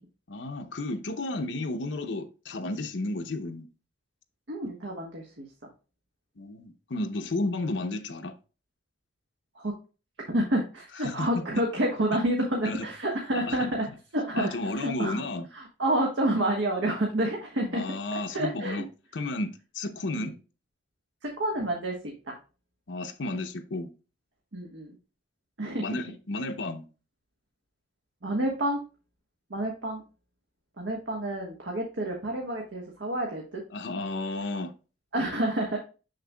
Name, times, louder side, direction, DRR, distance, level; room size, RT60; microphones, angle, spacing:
voice 1, 0.3-3.7 6.4-8.4 11.0-11.4 12.7-12.9 13.5-13.6 14.3-15.5 17.7-18.9 19.1-20.3 22.9-23.9 25.8-26.9 33.7-34.7, left 2 dB, 80° left, 0.7 m, -32 dB
voice 2, 4.5-5.7 9.5-9.7 10.3-15.2 15.5-17.8 18.3-18.9 20.1-20.3 21.2-22.0 22.2-22.4 24.5-25.0 25.6-25.9 28.2-28.8 29.5-30.0 30.8-33.6 35.1-35.8, right 1 dB, 85° right, 1.3 m, -29 dB
6.8 x 6.5 x 2.2 m
head